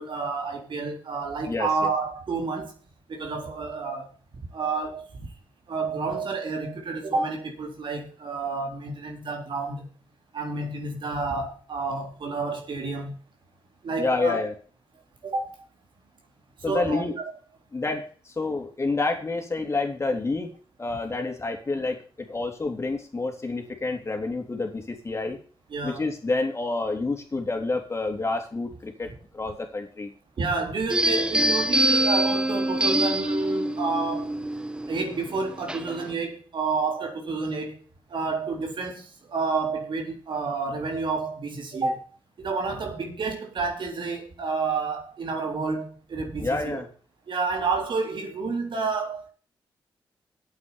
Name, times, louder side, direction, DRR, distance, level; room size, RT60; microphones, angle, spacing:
voice 1, 0.0-2.7 3.1-4.1 4.5-5.3 5.7-9.9 10.3-13.2 13.8-14.4 15.2-15.5 16.7-17.1 25.7-26.0 30.4-34.3 34.9-37.8 38.1-42.1 42.4-46.8 47.3-49.3, right 4 dB, 65° right, 3.7 m, -29 dB
voice 2, 14.0-14.5 16.6-17.2 17.7-20.5 20.8-22.0 22.3-25.4 25.8-30.1 46.4-46.9, left 3 dB, 30° left, 3.5 m, -28 dB
sound 1, 30.9-36.1, right 1 dB, 10° right, 1.2 m, -25 dB
8.7 x 8.4 x 7.2 m
cardioid pair, 60°, 9 cm